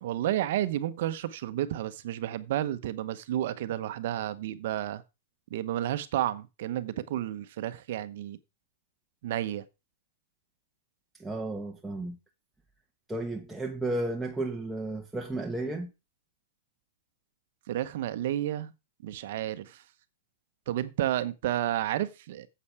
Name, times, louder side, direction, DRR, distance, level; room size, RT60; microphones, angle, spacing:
voice 1, 0.0-5.0 5.5-8.4 9.2-9.6 17.7-18.7 19.0-19.8 20.7-22.5, right 12 dB, 65° right, 0.9 m, -31 dB
voice 2, 11.2-12.2 13.1-15.9, right 2 dB, 5° right, 1.3 m, -33 dB
8.6 x 8.0 x 4.7 m
hypercardioid pair, 125°, 0 cm